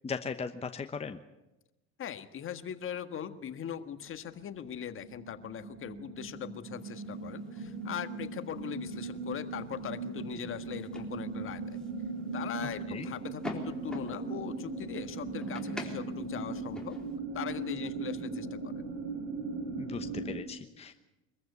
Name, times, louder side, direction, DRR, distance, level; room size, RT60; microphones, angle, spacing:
voice 1, 0.0-1.2 12.6-13.1 19.8-21.1, left 5 dB, 20° left, 7 dB, 1.0 m, -38 dB
voice 2, 2.0-11.8 12.3-17.0 17.3-18.8, left 9 dB, 40° left, 10 dB, 1.6 m, -40 dB
sound 1, 4.0-4.4 4.7-20.4, right 3 dB, 65° right, 3.4 m, -39 dB
sound 2, 6.7-17.2, left 2 dB, ahead, 3.8 m, -49 dB
24.0 x 14.5 x 8.3 m, 1.0 s
supercardioid pair, 90°, 32 cm